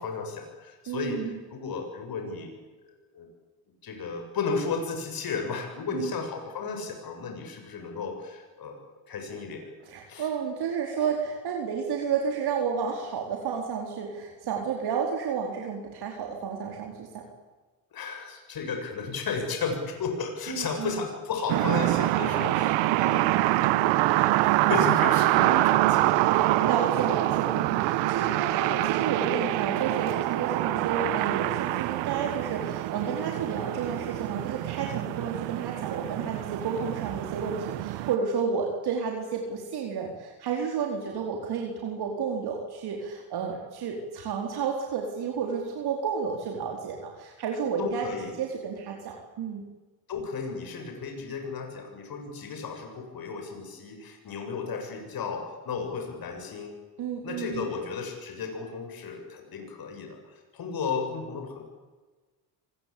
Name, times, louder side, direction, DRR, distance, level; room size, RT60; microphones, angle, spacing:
voice 1, 0.0-2.6 2.8-3.3 3.8-9.7 10.1-10.3 17.9-23.8 24.2-26.7 47.8-48.4 50.1-56.8 57.2-60.2 60.5-61.6, left 5 dB, 55° left, 4 dB, 7.2 m, -34 dB
voice 2, 0.9-1.4 5.9-6.1 9.8-17.2 20.5-21.0 25.5-25.7 26.6-48.1 48.4-49.6 57.0-57.7, right 6 dB, 65° right, 1 dB, 4.5 m, -31 dB
sound 1, 21.5-38.2, right 16 dB, 90° right, 1.3 m, -25 dB
25.0 x 20.5 x 8.7 m, 1.3 s
supercardioid pair, 75°, 42 cm